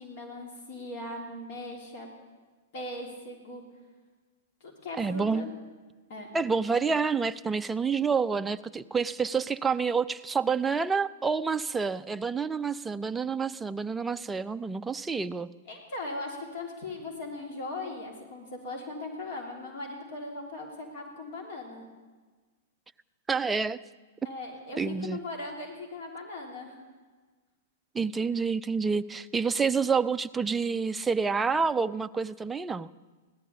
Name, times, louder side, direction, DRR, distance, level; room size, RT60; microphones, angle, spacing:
voice 1, 0.0-2.1 2.7-3.6 4.6-5.5 6.1-6.3 15.7-21.8 24.2-26.8, left 2 dB, 50° left, 1 dB, 3.0 m, -39 dB
voice 2, 5.0-5.5 6.3-15.5 23.3-23.8 24.8-25.2 27.9-32.9, right 5 dB, 10° right, 12 dB, 0.4 m, -28 dB
16.5 x 12.0 x 6.9 m, 1.4 s
figure-of-eight pair, 100°, 0 cm